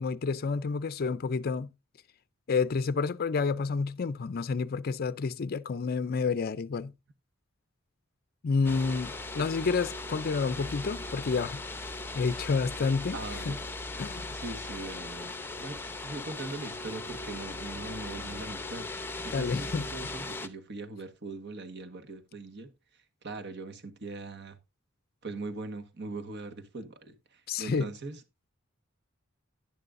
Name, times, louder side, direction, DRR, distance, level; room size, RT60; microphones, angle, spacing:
voice 1, 0.0-1.7 2.5-6.9 8.4-13.2 13.5-13.6 14.0-14.3 19.3-19.9 27.5-27.9, left 4 dB, 45° left, 0.4 m, -29 dB
sound 1, 8.6-20.5, left 2 dB, 10° left, 0.7 m, -38 dB
voice 2, 13.1-13.6 14.3-22.7 23.2-24.6 25.2-28.2, right 3 dB, 55° right, 1.4 m, -41 dB
11.0 x 10.5 x 2.5 m
head